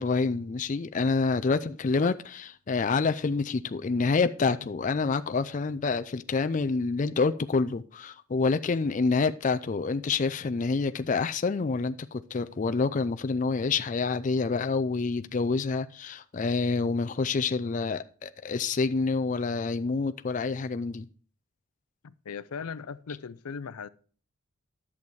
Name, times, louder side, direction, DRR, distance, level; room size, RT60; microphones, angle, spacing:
voice 1, 0.0-21.1, left 4 dB, 35° left, 0.4 m, -27 dB
voice 2, 22.0-23.9, left 6 dB, 90° left, 0.5 m, -38 dB
10.5 x 7.2 x 4.6 m
head